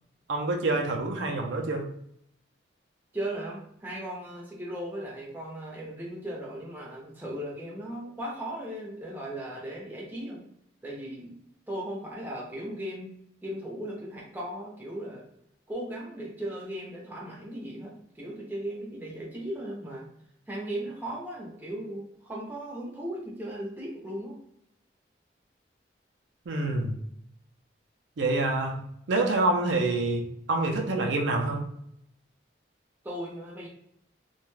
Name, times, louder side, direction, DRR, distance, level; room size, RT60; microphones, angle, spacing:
voice 1, 0.3-1.8 26.5-27.0 28.2-31.6, right 2 dB, 75° right, 2 dB, 0.4 m, -27 dB
voice 2, 3.1-10.4 10.8-11.3 11.7-13.1 13.4-15.3 15.7-20.1 20.5-24.4 33.0-33.7, right 1 dB, 10° right, -4 dB, 0.6 m, -37 dB
2.3 x 2.1 x 3.1 m, 0.71 s
head